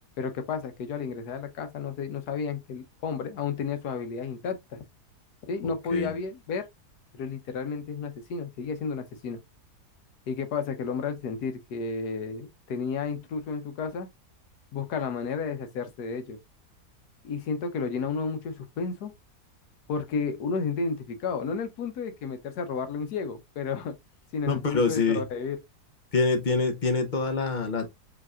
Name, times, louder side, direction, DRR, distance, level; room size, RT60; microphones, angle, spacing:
voice 1, 0.2-4.8 5.5-6.7 7.1-9.4 10.3-14.1 14.7-16.4 17.2-19.1 19.9-24.0 24.3-25.6, left 5 dB, 85° left, 1.4 m, -32 dB
voice 2, 5.6-6.1 24.5-25.2 26.1-27.9, left 4 dB, 40° left, 0.7 m, -26 dB
4.9 x 3.4 x 2.4 m
omnidirectional pair, 1.7 m